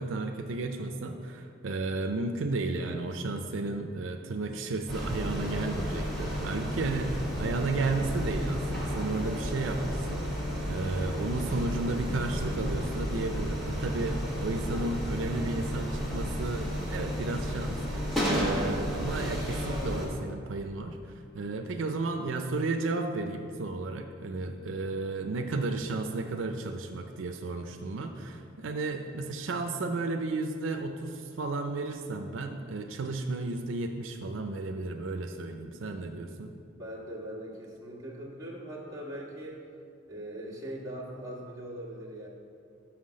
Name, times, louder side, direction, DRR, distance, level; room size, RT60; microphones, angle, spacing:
voice 1, 0.0-36.5, right 3 dB, 85° right, 5 dB, 0.5 m, -33 dB
sound 1, 4.9-20.1, equal, ahead, 1.5 m, -32 dB
voice 2, 36.7-39.6 40.1-42.3, right 1 dB, 20° right, -7 dB, 1.6 m, -41 dB
6.1 x 5.7 x 6.3 m, 2.4 s
head